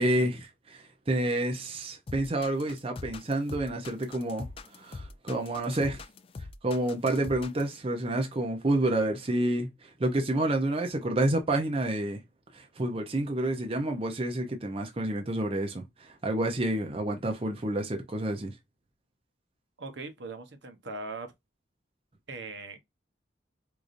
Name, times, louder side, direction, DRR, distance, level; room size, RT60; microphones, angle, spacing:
voice 1, 0.0-4.5 4.7-6.0 6.6-12.2 12.5-18.5, right 1 dB, 30° right, 0.6 m, -29 dB
sound 1, 2.1-7.7, left 3 dB, 30° left, 0.3 m, -42 dB
voice 2, 19.8-21.3 22.3-22.8, right 3 dB, 70° right, 0.9 m, -40 dB
4.7 x 2.6 x 2.5 m
head